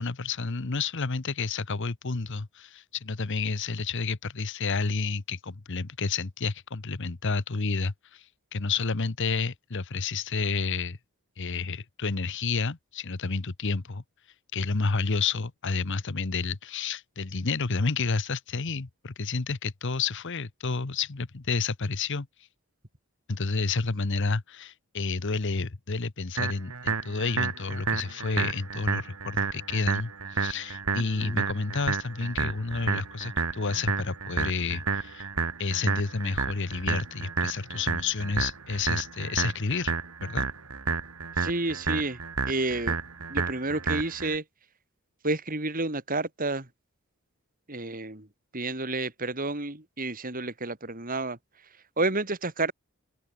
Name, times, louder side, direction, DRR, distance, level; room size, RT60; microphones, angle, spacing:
voice 1, 0.0-8.3 8.5-11.0 11.4-14.0 14.5-22.3 23.3-35.3 35.6-39.9 40.2-40.5, left 4 dB, 55° left, 1.0 m, -30 dB
sound 1, 26.4-44.4, right 4 dB, 70° right, 2.4 m, -31 dB
voice 2, 31.0-31.4 41.4-42.2 42.5-43.0 43.3-44.4 45.2-46.7 47.7-48.3 48.5-51.4 52.0-52.7, right 2 dB, 40° right, 3.1 m, -30 dB
open air
head